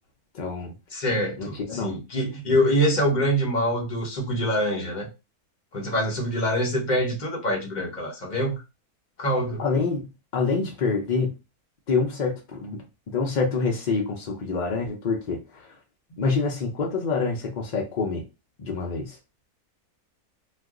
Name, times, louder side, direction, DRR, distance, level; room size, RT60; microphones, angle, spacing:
voice 1, 0.3-0.7 1.4-1.9 9.6-11.4 11.9-12.8 13.1-15.8 16.2-18.2 18.6-19.2, left 4 dB, 65° left, 0.4 m, -26 dB
voice 2, 0.9-5.1 5.7-8.6 9.2-9.6, equal, 35° left, 0.9 m, -25 dB
2.5 x 2.3 x 3.6 m
omnidirectional pair, 1.6 m